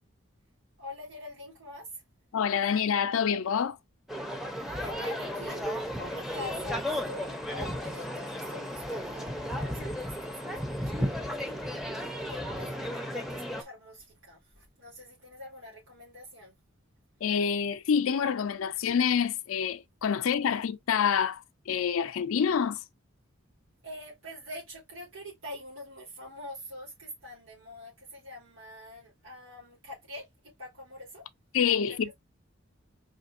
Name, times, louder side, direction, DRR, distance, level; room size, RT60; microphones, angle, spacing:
voice 1, 0.8-2.0 4.7-11.2 12.1-16.5 23.8-31.2 31.9-32.1, left 1 dB, 65° right, 3.1 m, -45 dB
voice 2, 2.3-3.8 17.2-22.8 31.5-32.1, left 7 dB, 80° left, 0.4 m, -27 dB
sound 1, 4.1-13.6, equal, ahead, 0.6 m, -34 dB
4.9 x 3.2 x 2.6 m
head